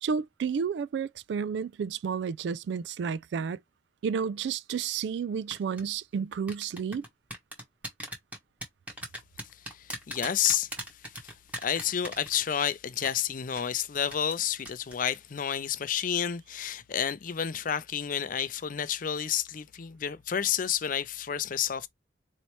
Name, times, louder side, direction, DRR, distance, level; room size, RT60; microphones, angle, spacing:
voice 1, 0.0-3.6 4.0-7.0, right 6 dB, 70° right, 0.3 m, -31 dB
sound 1, 5.5-5.8 6.5-12.7 13.0-13.2 13.6-13.7 14.1-14.4 14.7-14.9 15.2-15.4, equal, 10° right, 1.1 m, -38 dB
voice 2, 9.7-10.7 11.1-21.9, left 9 dB, 45° left, 0.5 m, -30 dB
4.1 x 3.2 x 3.0 m
head